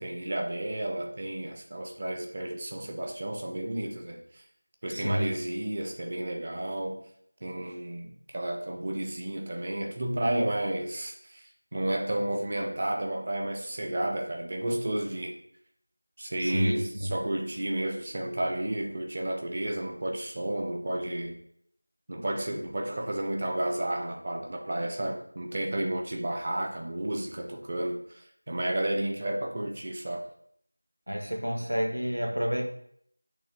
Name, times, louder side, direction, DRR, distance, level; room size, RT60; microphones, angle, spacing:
voice 1, 0.0-4.4 4.8-7.0 7.4-15.3 16.2-21.4 22.1-30.3, right 1 dB, 15° right, 3 dB, 0.5 m, -32 dB
voice 2, 4.9-5.3 16.4-17.1 31.1-32.6, equal, 65° right, 3 dB, 1.4 m, -29 dB
7.2 x 2.9 x 5.9 m, 0.68 s
figure-of-eight pair, 175°, 0 cm